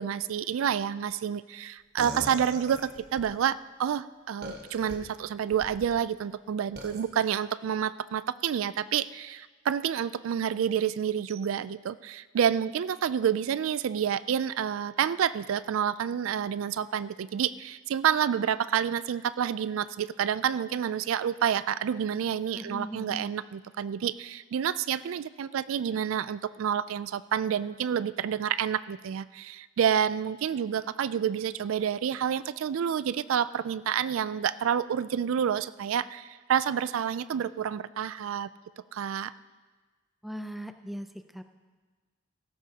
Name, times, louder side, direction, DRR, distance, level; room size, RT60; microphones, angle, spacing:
voice 1, 0.0-38.5 38.9-39.3, right 8 dB, 85° right, 16 dB, 0.3 m, -29 dB
sound 1, 2.0-3.3 4.4-5.0 5.5-5.9 6.8-7.0, right 1 dB, 55° right, 1.4 m, -40 dB
voice 2, 22.5-23.3 40.2-41.4, equal, ahead, 8 dB, 0.5 m, -39 dB
16.5 x 13.5 x 2.9 m, 1.3 s
head